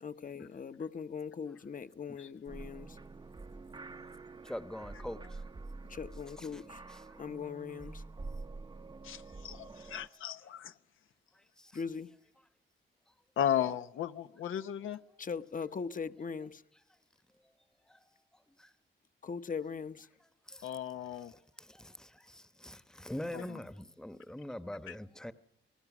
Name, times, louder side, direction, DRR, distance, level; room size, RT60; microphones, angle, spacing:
voice 1, 0.0-3.0 5.9-6.8 7.2-8.0 11.7-12.1 15.2-16.6 19.2-20.1, left 6 dB, 40° left, 1.0 m, -40 dB
sound 1, 2.5-10.1, right 3 dB, 20° right, 0.7 m, -47 dB
voice 2, 4.4-5.4 6.4-6.6 6.9-7.0 20.5-20.6 21.8-25.3, left 1 dB, 5° left, 1.0 m, -43 dB
voice 3, 9.0-10.7 13.4-15.0 20.6-21.3 23.3-23.6 24.9-25.0, left 10 dB, 85° left, 0.9 m, -35 dB
28.5 x 19.0 x 6.1 m
cardioid pair, 85°, 20 cm